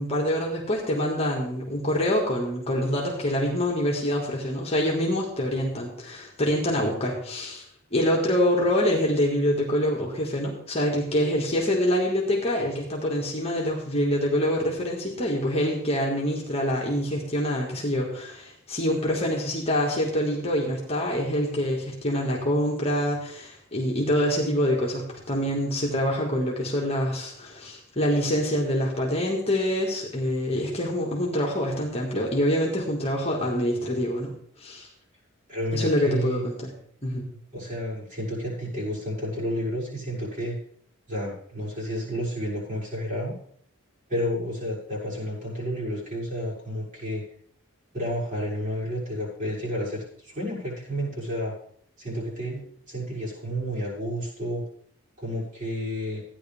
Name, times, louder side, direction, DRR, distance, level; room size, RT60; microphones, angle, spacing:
voice 1, 0.0-7.6 7.9-34.3 34.6-34.9 35.7-36.7 37.0-37.2, equal, 30° left, -2 dB, 2.1 m, -25 dB
voice 2, 35.5-36.4 37.5-40.6 41.1-43.3 44.1-47.2 47.9-51.5 52.0-54.6 55.2-56.2, equal, 35° right, -6 dB, 6.6 m, -31 dB
15.0 x 10.0 x 3.6 m, 0.64 s
head